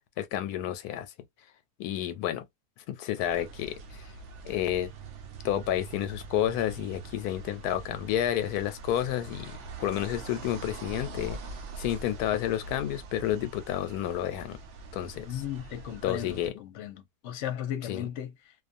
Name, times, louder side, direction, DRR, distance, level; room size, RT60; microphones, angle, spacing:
voice 1, 0.2-1.1 1.8-2.4 2.9-4.0 4.4-4.9 5.4-11.4 11.8-14.6 14.9-15.4 16.0-16.5 17.9-18.0, left 11 dB, 90° left, 1.1 m, -30 dB
sound 1, 3.2-16.5, right 3 dB, 65° right, 0.8 m, -43 dB
voice 2, 15.2-18.5, left 10 dB, 60° left, 0.9 m, -36 dB
2.5 x 2.3 x 2.5 m
omnidirectional pair, 1.6 m